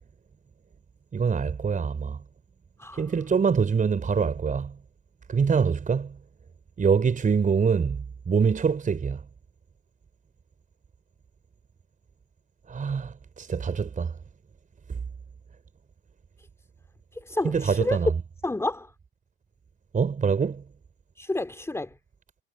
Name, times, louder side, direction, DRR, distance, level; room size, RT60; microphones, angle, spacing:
voice 1, 1.1-2.2 3.0-4.7 5.3-6.1 6.8-9.2 12.7-14.1 17.4-18.1 19.9-20.6, right 6 dB, 25° right, 4.7 m, -24 dB
voice 2, 17.1-18.0 18.4-18.9 21.2-22.0, left 2 dB, 10° left, 2.7 m, -30 dB
hypercardioid pair, 85°, 34 cm